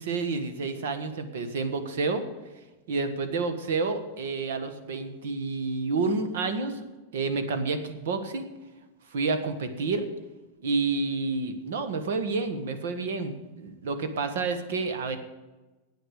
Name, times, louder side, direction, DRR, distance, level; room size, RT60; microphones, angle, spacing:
voice 1, 0.0-2.2 2.9-6.8 7.1-8.5 9.1-10.0 10.6-15.2, right 4 dB, 70° right, 8 dB, 1.5 m, -29 dB
8.9 x 8.1 x 8.4 m, 1.1 s
supercardioid pair, 170°, 0 cm